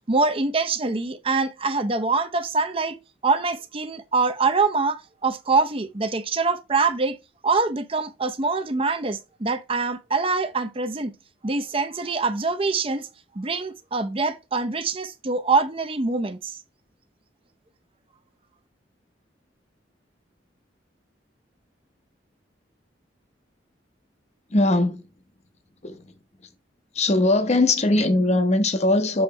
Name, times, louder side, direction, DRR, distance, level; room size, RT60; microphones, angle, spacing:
voice 1, 0.1-3.0 3.2-7.2 7.4-11.1 11.4-13.1 13.3-16.6, right 4 dB, 30° right, 0.6 m, -24 dB
voice 2, 24.5-25.0 25.8-26.1 26.9-29.2, left 2 dB, 35° left, 0.9 m, -20 dB
7.1 x 3.2 x 4.6 m
head